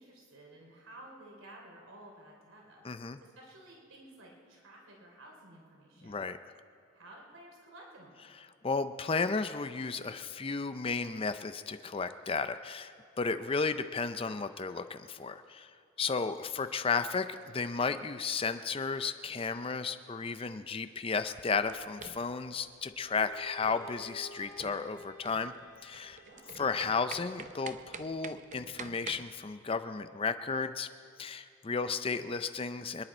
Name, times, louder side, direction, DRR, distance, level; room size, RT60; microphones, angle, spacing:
voice 1, 0.0-2.8 3.2-6.2 6.9-8.2 26.2-26.6, right 1 dB, 80° right, -1 dB, 3.2 m, -53 dB
voice 2, 2.8-3.2 6.0-6.4 8.6-15.7 16.0-25.5 25.8-26.2 26.6-30.9 31.2-33.0, left 4 dB, 25° left, 10 dB, 0.5 m, -33 dB
sound 1, 21.2-29.3, right 5 dB, 35° right, 0.6 m, -48 dB
Bowed string instrument, 23.0-27.8, left 2 dB, 55° left, 3.3 m, -54 dB
25.5 x 10.5 x 4.3 m, 2.6 s
head